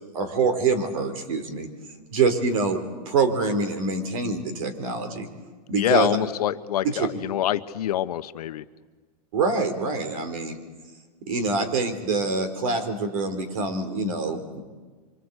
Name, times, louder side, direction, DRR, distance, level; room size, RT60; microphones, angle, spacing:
voice 1, 0.1-1.7 2.1-2.8 3.1-5.3 5.7-6.2 6.8-7.1 9.3-10.6 11.3-14.6, right 4 dB, 60° right, 8 dB, 3.7 m, -25 dB
voice 2, 5.7-8.6, left 12 dB, 75° left, 11 dB, 1.1 m, -25 dB
25.5 x 24.5 x 8.2 m, 1.4 s
supercardioid pair, 175°, 20 cm